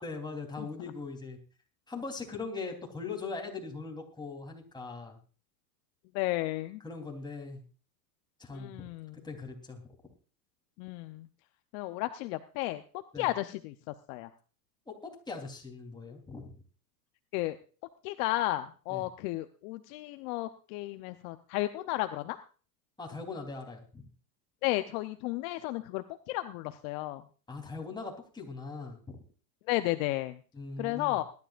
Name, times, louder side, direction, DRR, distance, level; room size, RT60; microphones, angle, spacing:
voice 1, 0.0-1.4 1.9-5.2 6.8-7.6 8.4-8.7 9.2-9.8 13.1-13.3 14.9-16.5 18.9-19.0 23.0-24.1 27.5-29.2 30.5-31.2, left 4 dB, 10° left, 1 dB, 3.6 m, -40 dB
voice 2, 6.1-6.8 8.5-9.2 10.8-11.3 11.7-12.8 13.2-14.3 17.3-17.6 18.0-22.4 24.6-27.2 29.7-30.4 30.8-31.2, left 17 dB, 55° left, 10 dB, 0.9 m, -33 dB
21.0 x 12.0 x 2.5 m, 0.38 s
hypercardioid pair, 105°, 50 cm